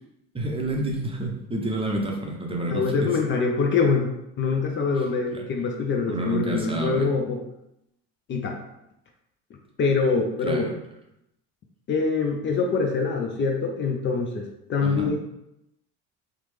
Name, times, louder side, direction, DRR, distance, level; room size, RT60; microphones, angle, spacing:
voice 1, 0.3-3.1 5.3-5.4 6.1-7.1 10.4-10.8 14.8-15.1, right 2 dB, 15° right, -1 dB, 0.6 m, -29 dB
voice 2, 2.7-4.1 4.4-7.4 8.3-8.6 9.8-10.7 11.9-15.2, left 4 dB, 35° left, 2 dB, 0.5 m, -24 dB
3.2 x 2.0 x 3.1 m, 0.84 s
supercardioid pair, 95°, 32 cm